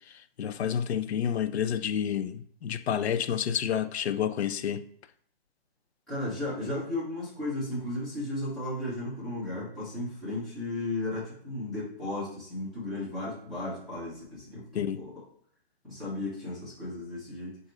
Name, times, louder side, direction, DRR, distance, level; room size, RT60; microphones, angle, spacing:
voice 1, 0.1-4.9 14.7-15.0, left 9 dB, 85° left, 0.5 m, -29 dB
voice 2, 6.1-15.1 15.8-17.6, left 1 dB, ahead, 0.8 m, -35 dB
4.7 x 2.6 x 4.3 m
hypercardioid pair, 175°, 31 cm